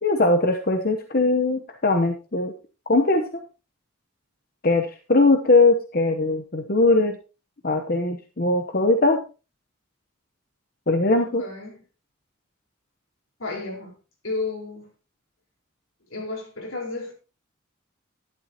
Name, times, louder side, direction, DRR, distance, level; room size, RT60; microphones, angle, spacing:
voice 1, 0.0-2.5 2.9-3.4 4.6-7.2 7.6-9.2 10.9-11.4, left 2 dB, 45° left, 0.9 m, -20 dB
voice 2, 11.2-11.8 13.4-14.0 14.2-14.9 16.1-17.1, left 3 dB, 80° left, 4.5 m, -32 dB
12.0 x 11.0 x 2.9 m
head